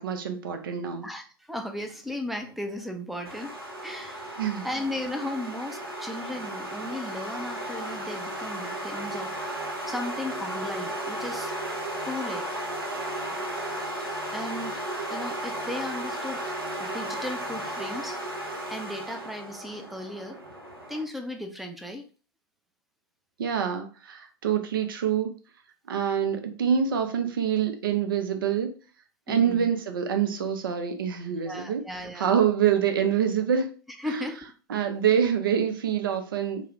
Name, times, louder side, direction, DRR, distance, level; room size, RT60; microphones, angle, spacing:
voice 1, 0.0-1.0 4.4-4.7 23.4-25.3 25.9-28.7 29.3-31.8 32.1-33.7 34.1-34.2 34.7-36.6, right 8 dB, 65° right, 7 dB, 0.5 m, -26 dB
voice 2, 1.0-3.5 3.8-11.5 12.1-12.5 13.3-13.5 14.3-14.8 15.1-16.4 16.8-18.2 18.7-20.4 20.9-22.0 29.3-29.7 31.4-32.3 34.0-34.4, left 1 dB, ahead, 5 dB, 0.3 m, -36 dB
sound 1, 3.3-21.0, right 1 dB, 80° right, 0.8 m, -34 dB
2.3 x 2.0 x 3.1 m, 0.38 s
figure-of-eight pair, 95°, 12 cm